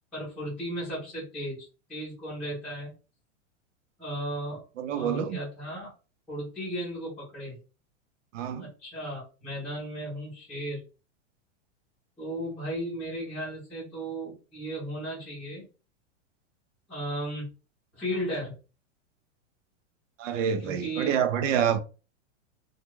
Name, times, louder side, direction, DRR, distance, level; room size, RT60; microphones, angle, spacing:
voice 1, 0.1-2.9 4.0-4.6 4.9-5.9 6.3-7.6 8.6-10.8 12.2-15.6 16.9-17.5 17.9-18.5 20.6-21.2, right 1 dB, ahead, 0.6 m, -35 dB
voice 2, 4.8-5.4 8.3-8.7 20.2-21.8, right 8 dB, 85° right, 0.6 m, -27 dB
2.4 x 2.3 x 3.0 m
supercardioid pair, 180°, 36 cm